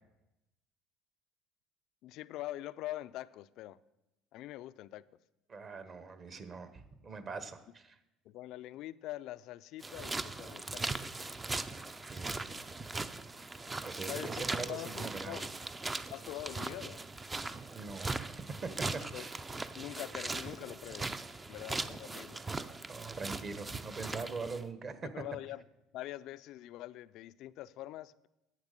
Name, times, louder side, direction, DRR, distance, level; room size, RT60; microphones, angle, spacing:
voice 1, 2.0-3.8 4.3-5.1 8.3-10.9 14.0-14.3 14.7-15.5 16.1-17.1 18.9-19.3 19.8-21.1 21.5-22.4 25.0-25.6 25.9-28.3, left 15 dB, 65° left, 0.4 m, -44 dB
voice 2, 5.5-8.0 12.0-12.7 13.8-15.4 17.7-19.4 22.9-25.0, right 4 dB, 35° right, 1.1 m, -43 dB
sound 1, 9.8-24.6, right 3 dB, 15° right, 0.5 m, -40 dB
10.5 x 8.2 x 6.6 m
cardioid pair, 130°, 0 cm